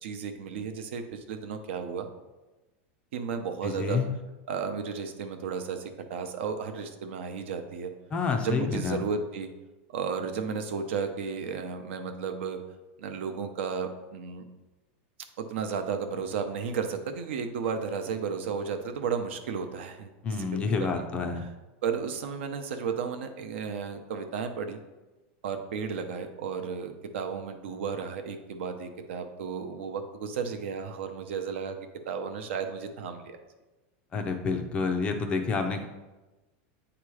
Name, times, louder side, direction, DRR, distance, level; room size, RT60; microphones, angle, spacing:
voice 1, 0.0-2.1 3.1-4.0 4.5-7.9 8.4-9.5 9.9-12.6 13.0-14.5 15.4-21.0 21.8-24.8 25.4-31.8 32.1-33.4, right 6 dB, 70° right, 7 dB, 0.8 m, -33 dB
voice 2, 3.6-4.1 8.1-9.0 20.2-21.5 34.1-35.8, left 4 dB, 15° left, 5 dB, 0.4 m, -28 dB
8.4 x 3.0 x 4.8 m, 1.1 s
supercardioid pair, 175°, 7 cm